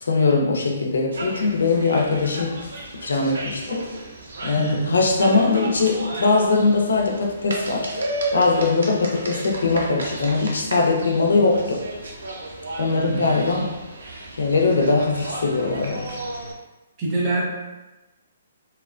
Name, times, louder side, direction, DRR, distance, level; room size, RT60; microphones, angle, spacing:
voice 1, 0.0-2.6 2.9-3.9 4.4-7.9 8.3-11.8 12.8-13.7 14.4-16.2, left 3 dB, 85° left, 0 dB, 0.5 m, -21 dB
sound 1, 1.1-16.5, right 1 dB, 70° right, 0.5 m, -33 dB
voice 2, 4.6-4.9 12.9-13.4 17.0-17.4, right 2 dB, 20° right, -4 dB, 0.5 m, -25 dB
2.8 x 2.1 x 2.4 m, 1.1 s
hypercardioid pair, 180°, 0 cm